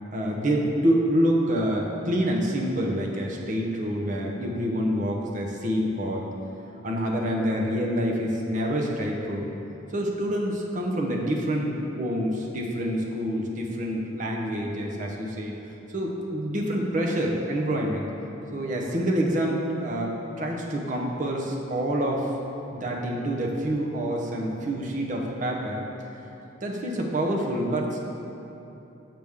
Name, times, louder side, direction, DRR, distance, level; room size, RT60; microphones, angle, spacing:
voice 1, 0.1-6.2 6.8-9.5 9.9-15.5 15.9-18.0 18.5-22.3 22.7-25.8 26.6-28.0, equal, 40° right, -1 dB, 0.7 m, -27 dB
6.4 x 5.9 x 3.5 m, 3.0 s
head